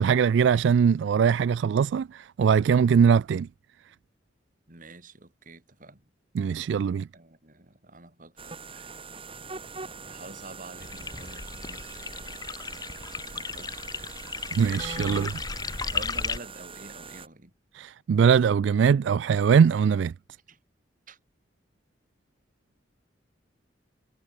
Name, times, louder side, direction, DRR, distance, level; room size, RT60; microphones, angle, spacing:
voice 1, 0.0-3.5 6.4-7.1 14.5-15.4 17.7-20.1, right 6 dB, 70° right, 0.3 m, -21 dB
voice 2, 4.7-6.1 7.1-9.3 10.1-11.9 12.5-13.9 14.9-17.5 20.5-20.6 21.1-21.2, right 2 dB, 45° right, 2.9 m, -48 dB
sound 1, 8.4-17.3, right 4 dB, 30° right, 4.6 m, -42 dB
sound 2, 10.8-16.4, left 5 dB, 20° left, 0.5 m, -35 dB
head